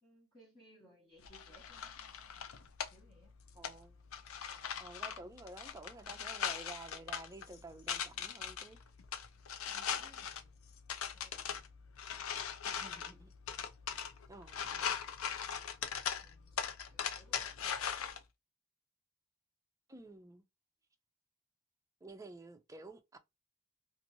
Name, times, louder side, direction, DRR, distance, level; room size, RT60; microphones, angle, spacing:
voice 1, 0.0-2.3 2.9-3.3 9.7-10.6 11.1-11.8 16.2-16.6 16.9-18.1, equal, 20° left, 1.0 m, -64 dB
sound 1, 1.2-18.2, left 7 dB, 80° left, 0.5 m, -41 dB
voice 2, 3.6-3.9 4.8-8.8 12.6-13.3 14.3-14.9 19.9-20.4 22.0-23.2, right 2 dB, 15° right, 0.5 m, -51 dB
2.8 x 2.6 x 2.6 m
head